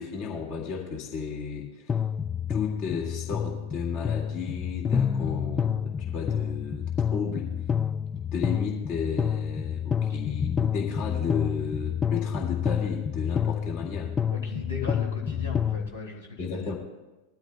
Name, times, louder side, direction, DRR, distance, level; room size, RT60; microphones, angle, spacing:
voice 1, 0.0-1.9 2.5-6.9 7.1-7.5 8.3-14.1 16.4-16.7, left 5 dB, 40° left, 0 dB, 2.1 m, -33 dB
sound 1, 1.9-15.9, left 8 dB, 20° left, 0.3 m, -29 dB
voice 2, 14.3-16.7, left 5 dB, 70° left, 0 dB, 2.2 m, -37 dB
20.5 x 13.0 x 2.2 m, 1.1 s
figure-of-eight pair, 90°, 0 cm